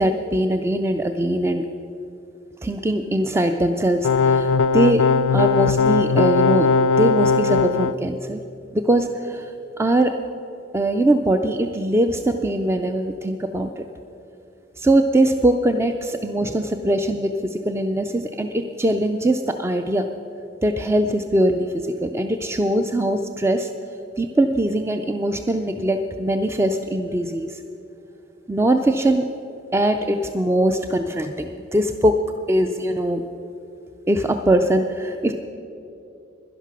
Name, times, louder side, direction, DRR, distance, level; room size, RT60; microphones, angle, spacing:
voice 1, 0.0-1.7 2.6-6.7 7.0-8.4 8.7-10.2 10.7-13.9 14.8-20.1 20.6-23.7 24.2-27.6 28.5-29.3 29.7-33.2 34.1-35.3, right 1 dB, 15° right, 7 dB, 0.3 m, -21 dB
sound 1, 4.0-7.9, left 5 dB, 90° left, 0.3 m, -18 dB
11.5 x 11.0 x 6.0 m, 2.8 s
head